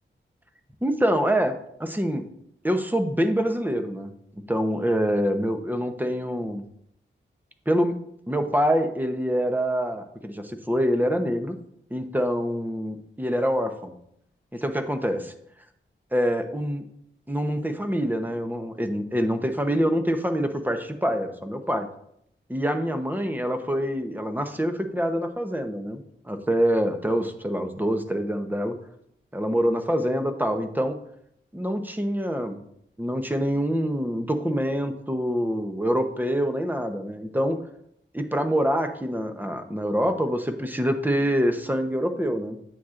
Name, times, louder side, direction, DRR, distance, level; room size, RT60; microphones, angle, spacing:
voice 1, 0.8-1.5 1.8-2.3 2.6-6.6 7.7-8.0 8.3-11.6 11.9-14.0 14.5-15.3 16.1-16.9 17.3-21.9 22.5-28.8 29.3-31.0 31.5-32.6 33.0-37.6 38.1-42.7, equal, 10° right, 6 dB, 0.9 m, -25 dB
9.1 x 7.2 x 2.5 m, 0.71 s
cardioid pair, 65°, 20 cm